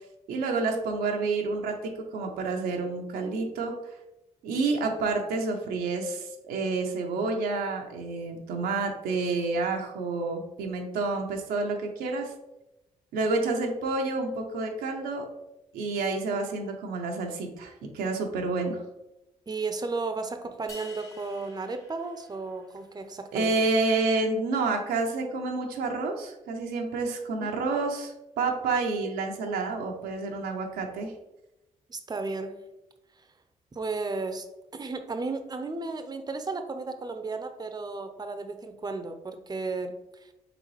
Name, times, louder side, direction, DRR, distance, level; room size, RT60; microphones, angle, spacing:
voice 1, 0.3-1.7 2.1-3.7 4.4-12.3 13.1-15.3 15.7-18.8 23.3-31.1, right 3 dB, 85° right, 2 dB, 0.6 m, -29 dB
voice 2, 19.5-23.5 27.4-27.5 31.9-32.6 33.7-34.5 34.7-39.9 40.2-40.3, right 3 dB, 25° right, 7 dB, 0.6 m, -34 dB
sound 1, 20.7-23.0, left 2 dB, 20° left, 1.2 m, -49 dB
3.9 x 3.7 x 3.1 m, 0.92 s
supercardioid pair, 50°, 16 cm